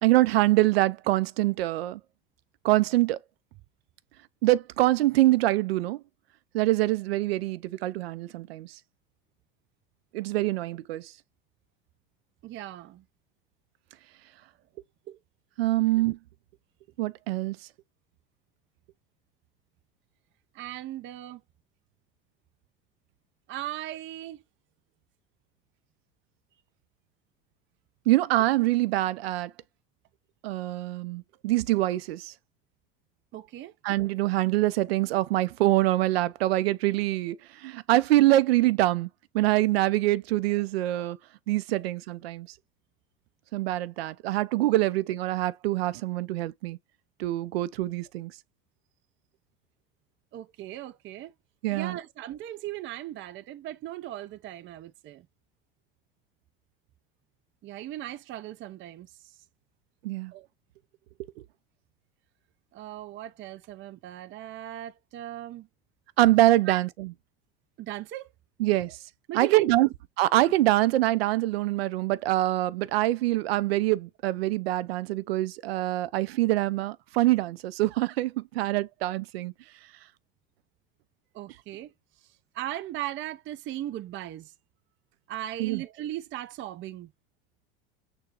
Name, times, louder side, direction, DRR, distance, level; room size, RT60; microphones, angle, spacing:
voice 1, 0.0-2.0 2.6-3.2 4.4-6.0 6.5-8.8 10.1-11.1 15.6-16.2 17.0-17.6 28.1-29.5 30.4-32.3 33.8-39.1 39.3-41.2 41.5-42.5 43.5-46.8 47.2-48.3 51.6-52.0 60.0-60.3 66.2-67.1 68.6-69.0 69.3-69.9 70.2-79.5 85.6-85.8, right 16 dB, 85° right, 0.5 m, -25 dB
voice 2, 12.4-13.0 15.1-15.2 20.5-21.4 23.5-24.4 33.3-33.7 41.8-41.9 50.3-51.3 51.7-55.3 57.6-59.4 60.3-60.5 62.7-65.7 66.7-66.8 67.8-68.3 69.3-69.9 81.3-81.9 82.2-84.5 85.3-87.1, right 13 dB, 40° right, 0.6 m, -38 dB
6.6 x 2.3 x 2.8 m
hypercardioid pair, 90°, 30 cm